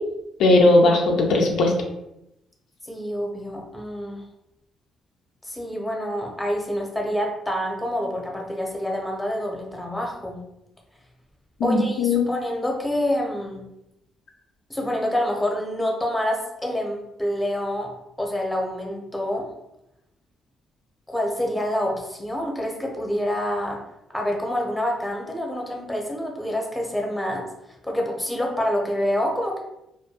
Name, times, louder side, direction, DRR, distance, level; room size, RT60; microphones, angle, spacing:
voice 1, 0.4-1.7 11.6-12.3, left 2 dB, 80° left, 1 dB, 0.4 m, -18 dB
voice 2, 2.8-4.2 5.4-10.4 11.6-13.6 14.7-17.9 18.2-19.5 21.1-23.8 24.1-29.6, equal, 5° left, 0 dB, 0.6 m, -27 dB
2.2 x 2.2 x 2.7 m, 0.86 s
cardioid pair, 90°, 0 cm